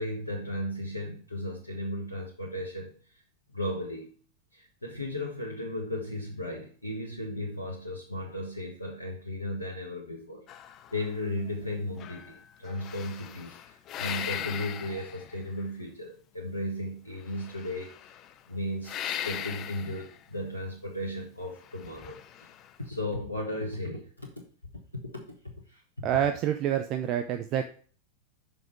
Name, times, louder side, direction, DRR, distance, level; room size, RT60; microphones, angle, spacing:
voice 1, 0.0-2.9 3.5-4.1 4.5-10.4 10.9-17.9 18.5-22.5 22.8-24.3 25.0-26.1, left 1 dB, 85° left, -1 dB, 1.3 m, -35 dB
sound 1, 10.5-11.7 12.0-15.7 17.3-18.4 18.8-20.2 21.6-22.7, left 10 dB, 35° left, 0.4 m, -39 dB
voice 2, 26.0-27.7, right 10 dB, 35° right, 7 dB, 0.6 m, -27 dB
5.7 x 5.4 x 5.0 m, 0.42 s
figure-of-eight pair, 90°, 0 cm